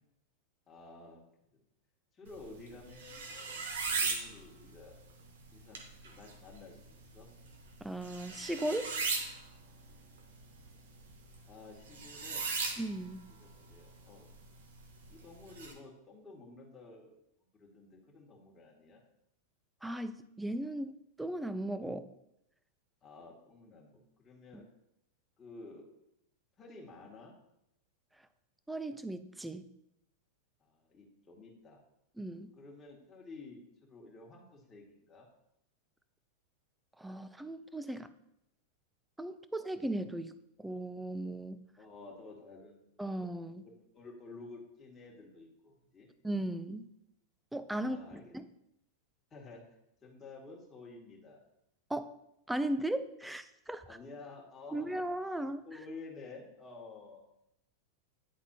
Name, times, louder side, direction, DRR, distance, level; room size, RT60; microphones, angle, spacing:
voice 1, 0.7-1.2 1.5-1.6 2.1-5.0 5.5-5.8 6.0-7.3 11.5-12.5 13.4-14.3 15.1-17.2 17.5-19.0 23.0-24.7 25.4-25.9 26.6-27.3 30.6-31.8 32.5-35.3 41.8-42.8 43.6-46.1 47.8-48.3 49.3-49.6 50.0-51.4 53.9-55.0 55.6-57.2, left 3 dB, 25° left, -2 dB, 2.0 m, -51 dB
sound 1, 2.3-15.7, right 4 dB, 80° right, 1.1 m, -40 dB
voice 2, 7.8-9.0 12.8-13.2 19.8-22.1 28.7-29.7 32.2-32.5 37.0-38.1 39.2-40.3 40.6-41.6 43.0-43.6 46.2-46.9 47.5-48.4 51.9-52.1 52.5-53.8 54.7-55.6, right 1 dB, 5° right, 12 dB, 0.4 m, -37 dB
10.0 x 3.9 x 2.8 m, 0.82 s
hypercardioid pair, 110°, 0 cm